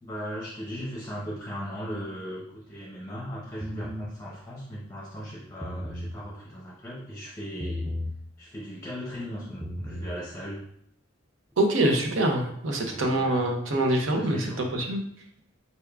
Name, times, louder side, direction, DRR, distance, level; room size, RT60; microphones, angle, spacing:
voice 1, 0.0-7.9 8.4-10.6 12.8-13.4 14.1-14.6, equal, 15° left, -5 dB, 0.7 m, -38 dB
sound 1, 3.6-4.1 5.5-6.1 7.6-8.1 9.5-10.1, left 1 dB, 5° right, 0.3 m, -34 dB
voice 2, 11.6-15.0, right 1 dB, 80° right, 2 dB, 0.7 m, -25 dB
4.3 x 3.5 x 2.3 m, 0.70 s
head